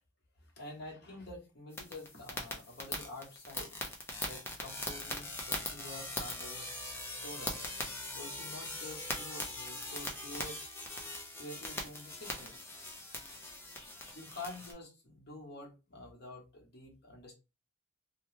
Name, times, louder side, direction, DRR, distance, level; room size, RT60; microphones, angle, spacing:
voice 1, 0.6-3.7 4.3-6.7 7.0-7.6 8.1-10.6 11.4-12.6 14.1-17.3, left 2 dB, 50° left, 1.0 m, -48 dB
sound 1, 1.7-14.7, left 2 dB, 10° left, 0.5 m, -41 dB
2.8 x 2.2 x 3.2 m
head